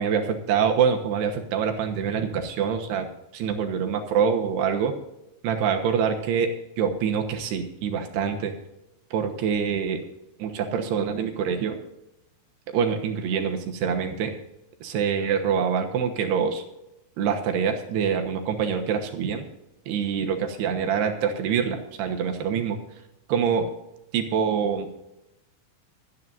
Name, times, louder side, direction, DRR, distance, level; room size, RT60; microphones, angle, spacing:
voice 1, 0.0-3.1 3.3-4.9 5.4-6.5 6.8-8.5 9.1-10.0 10.4-11.8 12.7-14.3 14.8-16.6 17.2-19.5 19.9-22.8 23.3-23.7 24.1-24.9, right 7 dB, 70° right, 4 dB, 3.0 m, -25 dB
26.5 x 9.3 x 2.6 m, 0.87 s
omnidirectional pair, 5.5 m